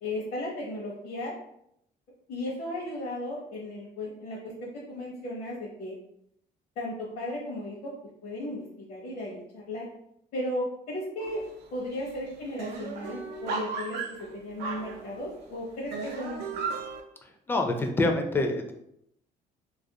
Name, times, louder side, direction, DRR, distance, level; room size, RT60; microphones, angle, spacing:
voice 1, 0.0-1.3 2.3-5.9 6.8-7.9 8.2-8.6 8.9-9.8 10.3-11.4 11.7-14.0 14.3-16.7, left 1 dB, 60° left, -5 dB, 0.7 m, -35 dB
sound 1, 11.2-11.6 11.9-12.0 12.3-15.4 15.9-17.0, right 4 dB, 80° right, 0.4 m, -36 dB
voice 2, 17.2-18.7, left 2 dB, 15° left, 4 dB, 0.4 m, -27 dB
2.4 x 2.3 x 2.7 m, 0.75 s
cardioid pair, 110°, 17 cm